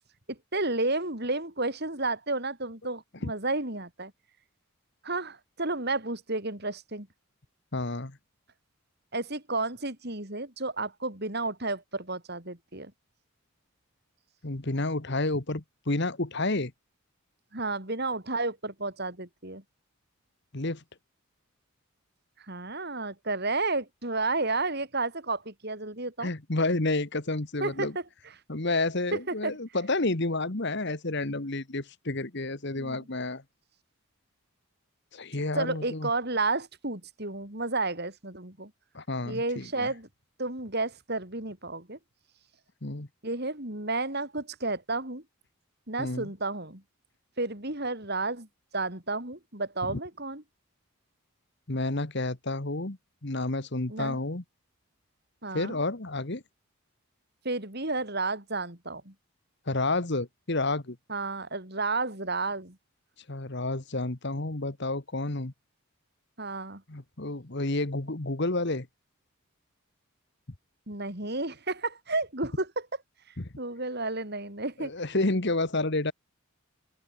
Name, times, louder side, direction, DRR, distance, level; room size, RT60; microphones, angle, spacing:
voice 1, 0.3-4.1 5.0-7.1 9.1-12.9 17.5-19.6 22.5-26.3 27.6-27.9 29.1-29.5 32.8-33.0 35.5-38.7 39.3-40.1 40.4-42.0 43.2-45.2 45.9-46.8 47.4-48.5 48.7-50.4 53.9-54.2 55.4-55.8 57.4-59.1 61.1-62.8 66.4-66.8 70.9-72.9 73.6-74.9, right 3 dB, 45° right, 4.3 m, -32 dB
voice 2, 7.7-8.2 14.4-16.7 20.5-20.8 26.2-27.9 28.5-33.4 35.1-36.1 38.9-39.9 42.8-43.1 46.0-46.3 49.9-50.0 51.7-53.0 53.2-54.4 55.5-56.4 59.7-61.0 63.3-65.5 66.9-68.9 73.4-73.5 74.8-76.1, left 2 dB, 50° left, 1.5 m, -30 dB
open air
head